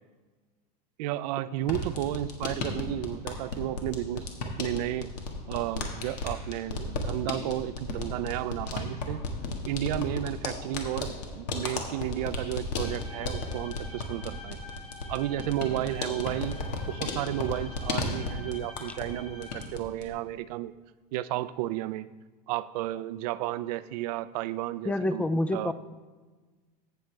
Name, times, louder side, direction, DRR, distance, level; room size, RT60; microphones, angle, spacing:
voice 1, 1.0-5.1 5.5-9.3 9.7-14.6 15.1-16.6 16.9-20.7 21.1-22.1 22.5-25.2 25.5-25.7, right 13 dB, 70° right, 15 dB, 0.5 m, -32 dB
sound 1, 1.6-19.1 19.4-20.1, left 2 dB, 85° left, 1.6 m, -35 dB
sound 2, 12.7-19.7, left 3 dB, 30° left, 1.6 m, -47 dB
voice 2, 24.8-25.7, left 1 dB, 5° left, 12 dB, 0.3 m, -27 dB
16.0 x 6.4 x 3.3 m, 1.3 s
supercardioid pair, 135°, 21 cm